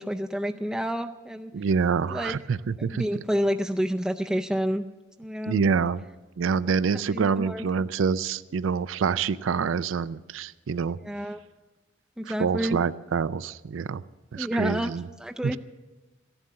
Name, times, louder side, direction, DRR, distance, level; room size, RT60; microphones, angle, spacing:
voice 1, 0.0-1.5 2.1-2.4 2.8-4.8 5.2-5.6 7.1-7.6 11.0-11.4 12.2-12.8 14.4-14.9 15.2-15.6, equal, 5° right, 6 dB, 0.4 m, -29 dB
voice 2, 1.5-3.0 5.4-6.0 6.4-11.0 12.3-14.0 14.3-15.1 15.4-15.6, right 5 dB, 90° right, 16 dB, 0.4 m, -26 dB
14.5 x 11.5 x 7.4 m, 1.1 s
head